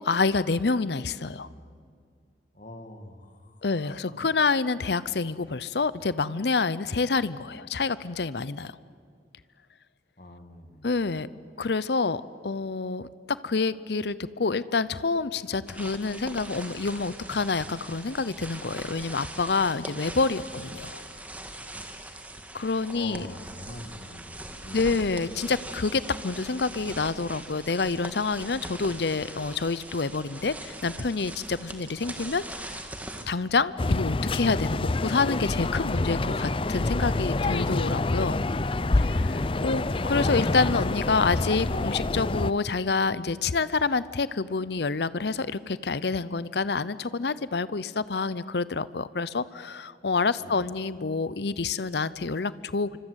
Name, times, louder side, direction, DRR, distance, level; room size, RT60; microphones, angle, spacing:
voice 1, 0.0-1.5 3.6-8.8 10.8-11.3 11.6-21.0 22.5-23.3 24.7-32.8 33.3-38.4 39.0-53.0, left 4 dB, 70° left, 17 dB, 0.7 m, -27 dB
voice 2, 1.3-1.6 2.5-4.2 10.2-10.9 20.5-20.9 22.9-24.9 50.4-50.7, left 1 dB, 45° left, 7 dB, 2.1 m, -44 dB
sound 1, 15.7-33.3, right 1 dB, 10° right, 1.8 m, -41 dB
sound 2, 33.8-42.5, left 2 dB, 30° left, 0.6 m, -27 dB
26.5 x 25.0 x 8.1 m, 2.2 s
head